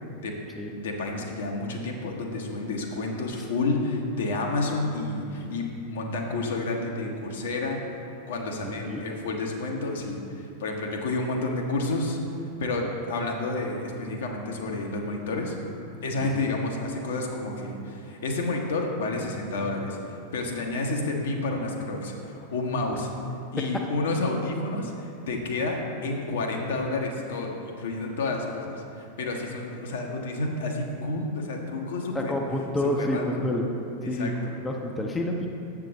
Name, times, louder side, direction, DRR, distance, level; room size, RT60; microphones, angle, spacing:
voice 1, 0.7-12.2 12.6-15.6 16.0-20.0 20.3-23.1 23.5-32.3 33.0-33.4 34.0-34.3, left 2 dB, 60° left, 1 dB, 0.9 m, -30 dB
voice 2, 8.5-9.0 16.2-16.3 23.6-23.7 32.1-33.7 34.0-35.5, left 1 dB, 10° left, 1 dB, 0.6 m, -29 dB
7.4 x 5.8 x 3.9 m, 2.7 s
figure-of-eight pair, 90°, 0 cm